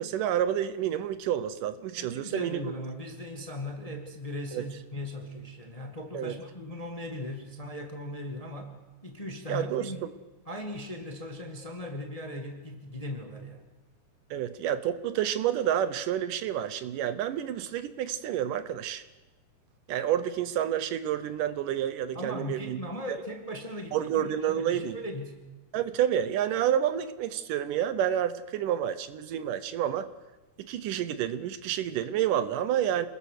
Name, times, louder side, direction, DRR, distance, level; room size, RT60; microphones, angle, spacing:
voice 1, 0.0-2.7 4.5-4.6 6.1-6.3 9.5-9.9 14.3-19.0 19.9-22.8 23.1-23.2 23.9-25.0 25.7-30.1 30.7-33.1, right 10 dB, 75° right, 13 dB, 2.4 m, -29 dB
voice 2, 2.0-8.8 9.0-10.0 10.4-13.7 22.1-25.3, left 1 dB, 15° left, 4 dB, 1.3 m, -38 dB
27.0 x 20.5 x 6.7 m, 1.1 s
omnidirectional pair, 3.9 m